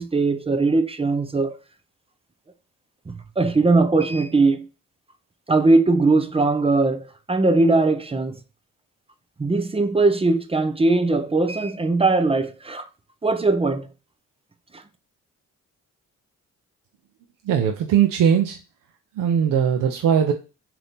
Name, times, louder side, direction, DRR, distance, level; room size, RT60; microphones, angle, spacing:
voice 1, 0.0-1.6 3.1-4.7 5.5-8.4 9.4-12.9 13.2-13.9, right 3 dB, 15° right, 0.5 m, -20 dB
voice 2, 17.5-18.6 19.2-20.3, right 8 dB, 75° right, 0.6 m, -19 dB
3.4 x 2.8 x 4.0 m
cardioid pair, 70°, 33 cm